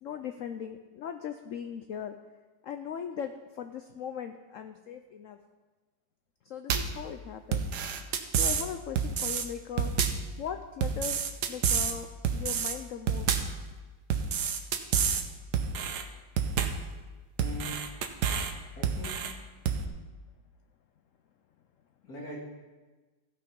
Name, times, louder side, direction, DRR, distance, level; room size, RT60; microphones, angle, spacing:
voice 1, 0.0-2.2 2.6-5.4 6.4-7.7 8.3-9.9 10.4-11.2 11.5-12.1 12.3-13.3, left 8 dB, 85° left, 7 dB, 0.7 m, -39 dB
sound 1, 6.7-7.0 7.5-8.7 9.0-9.4 9.8-10.3 10.8-11.9 12.2-12.7 13.1-13.6 14.1-15.2 15.5-16.0 16.4-16.9 17.4-18.5 18.8-19.3 19.7-19.9, right 7 dB, 70° right, 1.3 m, -29 dB
voice 2, 17.4-17.9 18.7-19.3 22.0-22.4, left 1 dB, 55° left, -5 dB, 2.9 m, -41 dB
15.0 x 5.9 x 5.2 m, 1.3 s
omnidirectional pair, 2.0 m